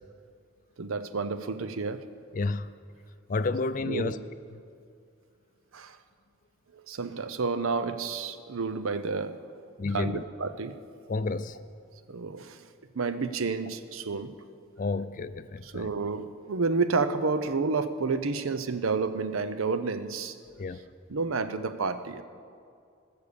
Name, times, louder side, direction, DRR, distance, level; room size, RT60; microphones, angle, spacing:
voice 1, 0.8-2.0 3.8-4.2 5.7-6.0 6.7-9.4 9.9-10.8 12.1-12.6 12.9-14.3 15.6-20.4 21.1-22.2, right 4 dB, 90° right, 11 dB, 0.7 m, -30 dB
voice 2, 2.3-2.7 3.3-4.2 9.8-10.2 11.1-11.6 14.8-15.9 20.6-20.8, left 3 dB, 40° left, 14 dB, 0.4 m, -30 dB
20.0 x 6.8 x 6.9 m, 2.4 s
head